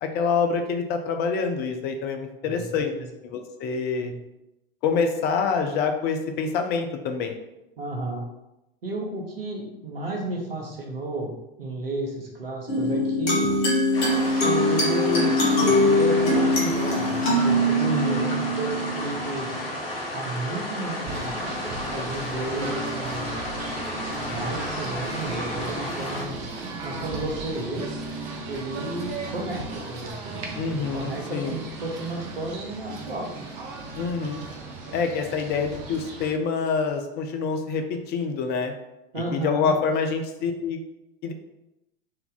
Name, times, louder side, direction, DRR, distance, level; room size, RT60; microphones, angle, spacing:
voice 1, 0.0-2.9 3.2-4.1 4.8-7.4 17.8-18.4 30.5-31.6 34.0-34.4 34.9-38.7 39.1-40.8 41.2-41.3, left 5 dB, 35° left, 5 dB, 0.5 m, -26 dB
voice 2, 7.8-8.2 8.8-13.5 14.3-19.6 20.1-21.5 21.9-23.3 24.2-26.4 26.8-27.8 28.5-33.3 39.1-39.7, right 2 dB, 75° right, -1 dB, 1.2 m, -32 dB
sound 1, 12.7-19.6, left 1 dB, 60° left, 1.4 m, -22 dB
sound 2, 13.9-26.2, left 1 dB, 80° left, 1.1 m, -33 dB
Singing / Bird, 21.0-36.3, right 3 dB, 50° right, 0.9 m, -36 dB
4.3 x 2.7 x 4.0 m, 0.91 s
figure-of-eight pair, 85°, 29 cm